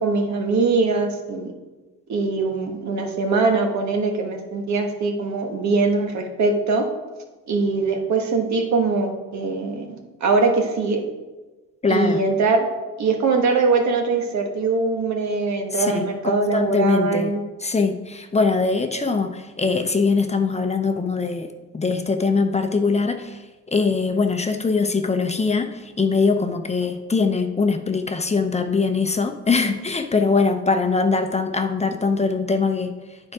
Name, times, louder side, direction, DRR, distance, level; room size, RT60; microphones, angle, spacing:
voice 1, 0.0-1.5 2.1-6.9 7.5-11.0 11.9-12.7 13.0-17.4, right 3 dB, 65° right, 3 dB, 1.4 m, -22 dB
voice 2, 11.8-12.2 15.7-16.0 16.5-17.3 17.6-21.5 21.7-33.3, left 4 dB, 20° left, 7 dB, 0.6 m, -22 dB
9.3 x 4.8 x 4.8 m, 1.2 s
cardioid pair, 90°, 30 cm